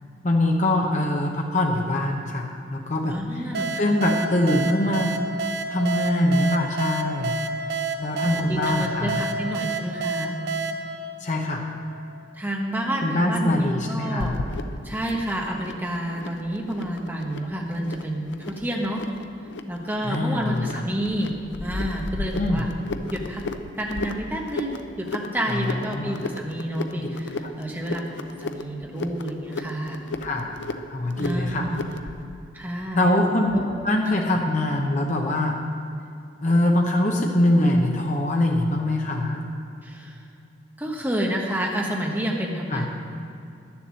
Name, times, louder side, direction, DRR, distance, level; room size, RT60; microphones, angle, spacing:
voice 1, 0.2-3.2 3.8-5.1 5.7-7.3 8.0-9.3 11.2-11.7 13.0-14.4 20.0-20.9 22.3-22.6 25.5-26.1 27.0-27.1 27.4-27.5 30.2-30.6 30.9-31.7 32.9-33.6 33.8-35.6 36.4-39.4 42.7-42.9, left 1 dB, 40° left, 0 dB, 0.9 m, -23 dB
voice 2, 3.1-4.0 8.2-10.4 12.3-14.3 14.8-19.0 19.7-21.3 21.6-22.7 23.1-23.4 23.8-28.1 28.4-30.0 31.2-31.8 32.5-33.1 33.5-33.6 39.8-40.2 40.8-42.9, equal, 10° right, -1 dB, 1.2 m, -29 dB
sound 1, 3.5-12.0, right 3 dB, 55° right, 0.6 m, -30 dB
sound 2, 14.2-32.2, left 2 dB, 70° left, 0.6 m, -35 dB
11.0 x 7.2 x 7.5 m, 2.6 s
head